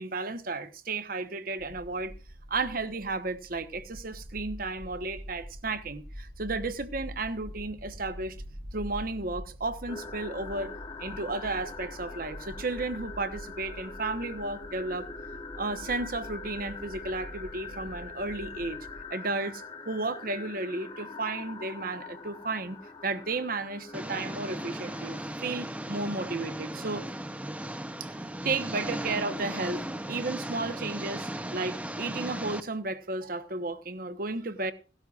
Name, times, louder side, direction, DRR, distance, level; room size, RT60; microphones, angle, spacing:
voice 1, 0.0-2.1 2.5-8.4 8.7-10.7 11.0-15.1 15.6-22.8 23.0-27.0 28.0-28.1 28.4-34.7, right 3 dB, 50° right, 1.1 m, -33 dB
sound 1, 1.6-19.0, equal, 70° right, 4.8 m, -45 dB
sound 2, 9.9-25.2, left 4 dB, 30° left, 1.3 m, -43 dB
Engine, 23.9-32.6, right 1 dB, 5° right, 0.6 m, -36 dB
17.0 x 12.5 x 2.5 m
head